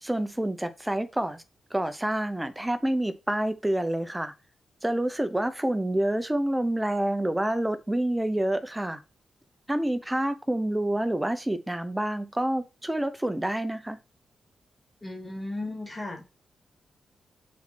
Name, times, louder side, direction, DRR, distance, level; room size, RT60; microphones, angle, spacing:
voice 1, 0.0-1.4 1.7-4.3 4.8-9.0 9.7-14.0, right 1 dB, 5° right, 0.7 m, -28 dB
voice 2, 15.0-16.3, left 2 dB, 10° left, 2.3 m, -35 dB
7.9 x 4.2 x 4.3 m
wide cardioid pair, 180°, 0 cm